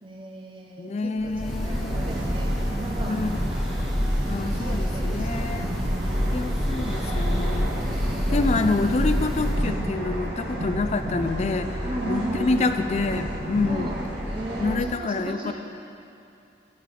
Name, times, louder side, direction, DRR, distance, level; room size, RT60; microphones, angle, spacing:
voice 1, 0.0-3.6 4.4-5.6 5.9-6.8 11.8-12.5 13.6-15.5, right 1 dB, 30° right, -1 dB, 0.7 m, -36 dB
voice 2, 0.8-2.0 3.1-3.3 4.3-5.7 6.3-7.7 8.3-13.9 14.6-15.5, left 3 dB, 40° left, 9 dB, 0.4 m, -27 dB
Breathing / Bird, 1.2-9.8, equal, ahead, 0.9 m, -27 dB
sound 1, 1.7-14.7, equal, 65° right, 1.4 m, -32 dB
8.7 x 7.5 x 4.8 m, 2.7 s
head